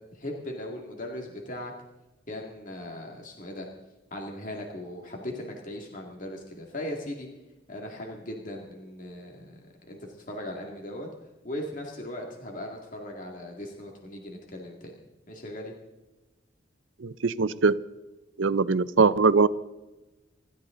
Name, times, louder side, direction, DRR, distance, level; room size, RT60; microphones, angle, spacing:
voice 1, 0.1-1.7 2.3-3.7 4.1-7.3 7.7-9.6 9.9-11.1 11.4-15.0 15.3-15.7, left 1 dB, 40° left, 0 dB, 2.3 m, -38 dB
voice 2, 17.0-17.8 18.4-19.5, right 4 dB, 85° right, 15 dB, 0.7 m, -21 dB
25.0 x 13.5 x 3.9 m, 1.0 s
head